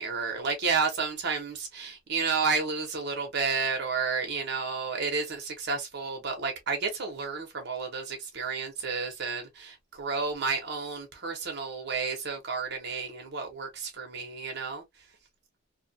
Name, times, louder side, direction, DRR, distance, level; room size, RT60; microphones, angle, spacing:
voice 1, 0.0-14.8, right 4 dB, 60° right, 0.9 m, -31 dB
2.7 x 2.4 x 2.6 m
head